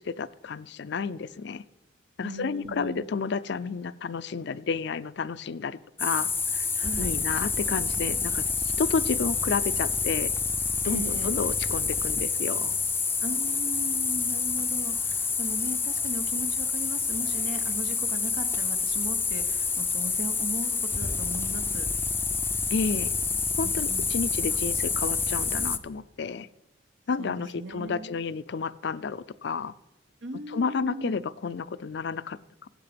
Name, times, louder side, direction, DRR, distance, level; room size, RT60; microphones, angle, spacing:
voice 1, 0.0-1.6 2.2-6.7 7.0-8.4 8.8-10.3 10.8-12.8 22.7-23.2 23.6-26.5 27.1-29.7 30.5-32.7, left 5 dB, 65° left, 15 dB, 0.5 m, -31 dB
voice 2, 2.2-3.1 6.7-7.2 10.8-11.4 13.2-21.9 23.6-24.1 27.2-28.2 30.2-31.2, right 2 dB, 80° right, 8 dB, 1.2 m, -38 dB
sound 1, 6.0-25.8, left 5 dB, 15° left, 0.5 m, -28 dB
17.5 x 8.3 x 5.1 m, 1.0 s
head